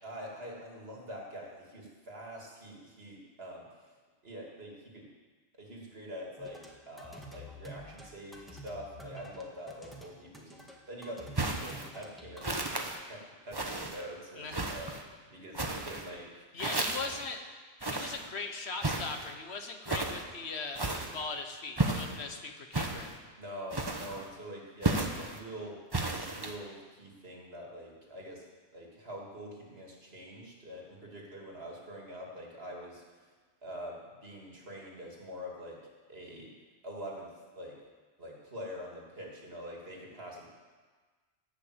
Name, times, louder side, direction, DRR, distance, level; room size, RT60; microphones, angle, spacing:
voice 1, 0.0-3.6 4.2-5.1 5.6-12.5 13.1-14.9 15.3-16.5 23.4-25.8 26.3-28.4 28.7-33.0 33.6-35.8 36.1-36.5 36.8-37.7 38.2-40.5, equal, 60° right, -2 dB, 2.9 m, -45 dB
sound 1, 6.4-12.6, equal, ahead, 1.7 m, -49 dB
sound 2, 11.4-11.9 12.4-13.0 13.5-14.0 14.5-15.0 15.5-16.1 16.6-17.3 17.8-18.3 18.8-19.3 19.9-20.2 20.8-21.2 21.8-22.2 22.7-23.2 23.7-24.3 24.8-25.4 25.9-26.6, right 2 dB, 20° right, 1.0 m, -33 dB
voice 2, 16.5-17.4 17.8-23.1, left 4 dB, 65° left, 5 dB, 1.5 m, -39 dB
18.5 x 6.3 x 8.1 m, 1.4 s
omnidirectional pair, 1.2 m